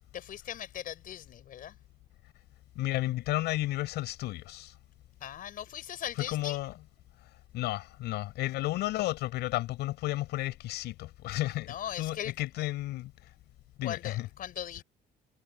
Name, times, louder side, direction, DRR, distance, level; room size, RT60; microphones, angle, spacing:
voice 1, 0.1-1.7 5.2-6.6 11.3-12.3 13.8-14.8, left 10 dB, 55° left, 4.7 m, -39 dB
voice 2, 2.7-4.7 6.2-6.7 7.5-13.3 13.8-14.3, left 16 dB, 80° left, 6.8 m, -33 dB
cardioid pair, 110°, 17 cm